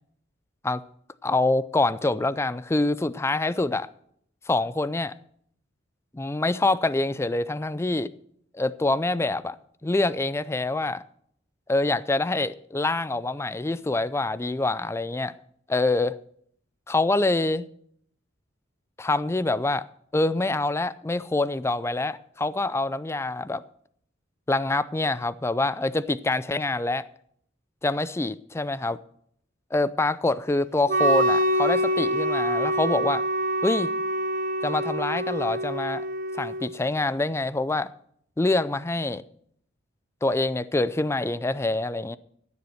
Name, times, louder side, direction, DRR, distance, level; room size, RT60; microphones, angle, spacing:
voice 1, 1.2-3.9 4.5-5.1 6.1-8.1 8.5-11.0 11.7-15.3 15.7-16.2 16.9-17.7 19.0-19.8 20.1-23.6 24.5-27.0 27.8-29.0 29.7-33.2 33.6-33.9 34.6-36.1 36.3-37.9 38.4-39.2 40.2-42.2, left 2 dB, 15° left, 0.4 m, -25 dB
Wind instrument woodwind instrument, 30.9-36.7, right 1 dB, 45° right, 0.9 m, -25 dB
14.5 x 7.0 x 6.4 m
head